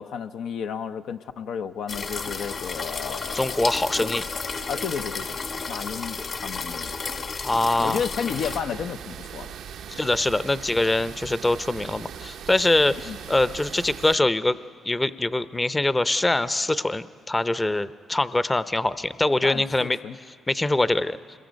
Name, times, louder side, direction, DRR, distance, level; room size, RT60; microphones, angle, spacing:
voice 1, 0.0-3.6 4.0-4.1 4.7-5.4 5.7-6.9 7.8-9.5 13.1-13.2 19.4-20.2, left 7 dB, 75° left, 8 dB, 0.5 m, -32 dB
sound 1, 1.9-8.6, left 4 dB, 50° left, 1.9 m, -32 dB
voice 2, 3.3-4.2 7.4-8.0 9.9-14.6 14.8-20.0 20.3-21.2, left 2 dB, 20° left, 15 dB, 0.6 m, -23 dB
sound 2, 8.3-14.2, right 8 dB, 80° right, 0.7 m, -40 dB
26.5 x 21.5 x 5.2 m, 2.2 s
cardioid pair, 70°, 0 cm